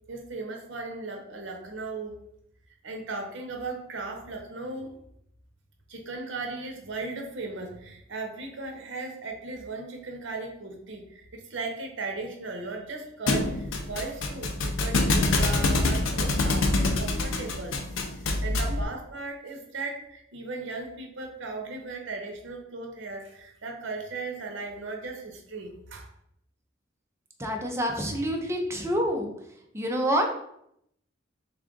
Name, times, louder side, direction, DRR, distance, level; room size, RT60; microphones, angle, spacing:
voice 1, 0.1-2.2 2.8-4.9 5.9-17.8 18.2-26.1, right 3 dB, 70° right, 2 dB, 0.8 m, -37 dB
Thump thud, 13.3-18.8, left 2 dB, 70° left, 0.5 m, -25 dB
voice 2, 27.4-29.3 29.7-30.3, equal, 15° right, 2 dB, 0.5 m, -27 dB
3.4 x 2.4 x 3.7 m, 0.74 s
head